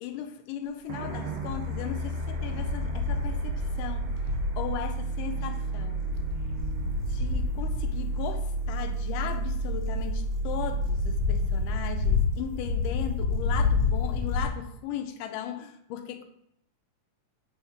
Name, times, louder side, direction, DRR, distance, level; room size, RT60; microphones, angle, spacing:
voice 1, 0.0-4.1 4.6-6.1 7.1-16.2, left 9 dB, 90° left, 7 dB, 2.2 m, -37 dB
sound 1, 0.9-13.6, right 3 dB, 90° right, 1.1 m, -32 dB
sound 2, 1.5-4.8 5.7-14.4, left 5 dB, 60° left, 2.5 m, -30 dB
5.6 x 5.3 x 4.4 m, 0.72 s
omnidirectional pair, 3.7 m